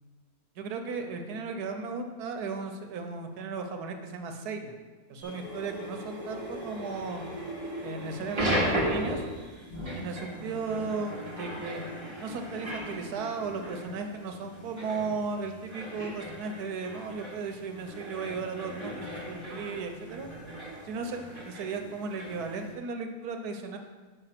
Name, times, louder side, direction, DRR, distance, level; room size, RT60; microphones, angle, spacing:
voice 1, 0.6-4.8 5.1-7.2 7.8-9.2 9.9-11.8 12.2-20.3 20.8-23.8, right 4 dB, 90° right, 5 dB, 1.3 m, -35 dB
sound 1, 5.2-22.7, equal, 20° right, 1.3 m, -37 dB
5.8 x 5.4 x 5.8 m, 1.4 s
omnidirectional pair, 1.6 m